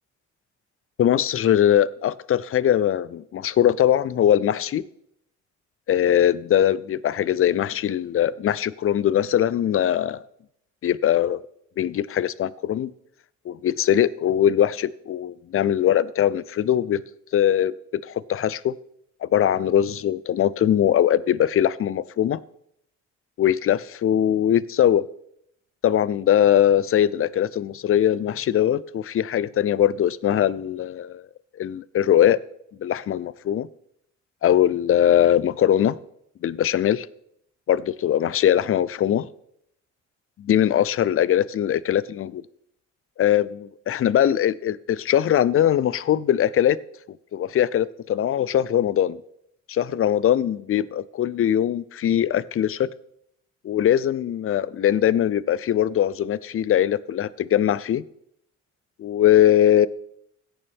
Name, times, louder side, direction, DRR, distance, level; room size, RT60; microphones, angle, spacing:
voice 1, 1.0-4.8 5.9-10.2 10.8-11.4 11.8-12.9 13.5-17.0 17.3-17.7 18.1-18.7 19.2-22.4 23.4-25.0 25.8-31.2 31.6-32.4 32.8-33.7 34.4-36.0 36.4-37.1 37.7-39.3 40.4-42.4 43.2-46.8 47.3-49.2 49.7-52.9 53.6-58.0 59.0-59.9, left 10 dB, 45° left, 0.5 m, -21 dB
16.0 x 7.0 x 3.5 m
cardioid pair, 90°, 30 cm